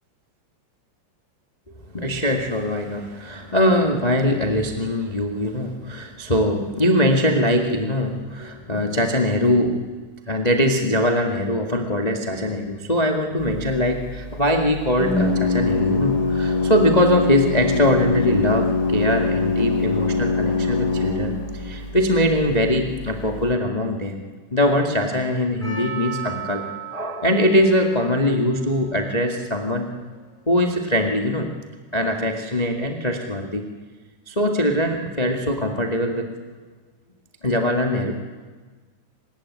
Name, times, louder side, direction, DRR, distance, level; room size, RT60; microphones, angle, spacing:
voice 1, 1.9-9.8 10.3-24.2 24.5-26.6 26.9-29.9 30.5-31.5 31.9-33.6 34.3-36.3 37.4-38.1, left 1 dB, 75° left, 4 dB, 0.3 m, -22 dB
Organ, 13.4-23.5, left 3 dB, 25° left, 2.7 m, -24 dB
Percussion, 25.6-30.0 30.6-30.7, right 7 dB, 10° left, 6.1 m, -37 dB
24.5 x 20.0 x 9.6 m, 1.4 s
omnidirectional pair, 4.7 m